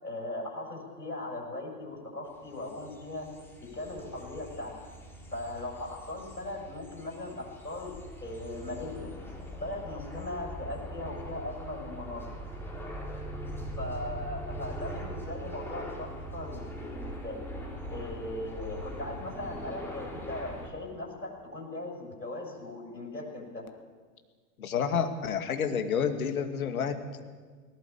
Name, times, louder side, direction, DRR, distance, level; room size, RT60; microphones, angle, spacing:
voice 1, 0.0-3.3 3.6-4.7 5.3-9.1 9.5-12.3 13.8-17.4 17.9-23.6, left 2 dB, 90° left, 0 dB, 7.3 m, -39 dB
sound 1, 2.4-20.7, right 1 dB, 5° left, 4.2 m, -41 dB
voice 2, 24.6-27.2, left 7 dB, 60° left, 7 dB, 2.4 m, -29 dB
19.5 x 17.5 x 8.7 m, 1.5 s
figure-of-eight pair, 105°, 47 cm